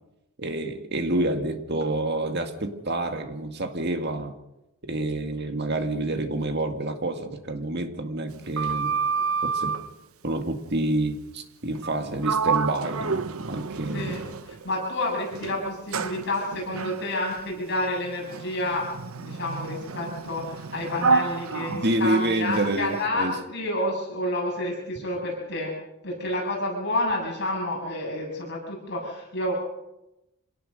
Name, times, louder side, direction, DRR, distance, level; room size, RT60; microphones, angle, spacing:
voice 1, 0.4-4.3 4.8-9.0 9.4-9.8 10.2-14.2 21.7-23.4, right 2 dB, 50° right, 2.1 m, -28 dB
Sliding door, 8.3-9.9 11.8-12.0 12.2-14.7 15.3-22.8, right 5 dB, 80° right, 0.9 m, -29 dB
voice 2, 13.9-18.8 19.1-25.7 26.0-29.5, left 1 dB, 50° left, 7.7 m, -29 dB
26.5 x 17.5 x 6.6 m
head